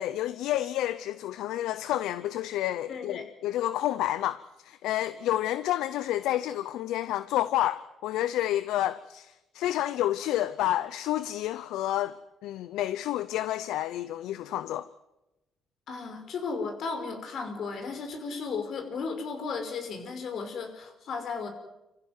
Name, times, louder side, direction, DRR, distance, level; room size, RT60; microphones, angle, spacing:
voice 1, 0.0-12.2 12.4-14.9, left 13 dB, 80° left, 0.7 m, -29 dB
voice 2, 2.9-3.3 15.9-21.5, left 4 dB, 60° left, 5.3 m, -35 dB
27.0 x 15.5 x 9.4 m
supercardioid pair, 80°, 0 cm